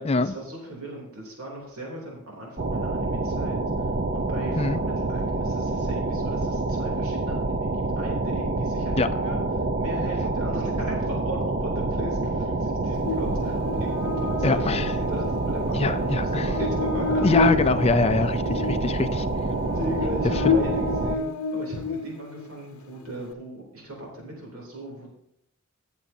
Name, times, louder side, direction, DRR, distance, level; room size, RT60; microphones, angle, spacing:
voice 1, 0.0-17.5 19.7-25.1, right 1 dB, 75° right, -2 dB, 3.1 m, -37 dB
sound 1, 2.6-21.2, right 2 dB, 40° right, 0.7 m, -27 dB
Buzz, 13.0-22.5, left 3 dB, 70° left, 0.7 m, -30 dB
voice 2, 14.4-14.9 15.8-16.5 17.2-19.3 20.4-20.5, left 3 dB, 30° left, 11 dB, 0.4 m, -23 dB
17.5 x 7.1 x 2.7 m, 0.79 s
head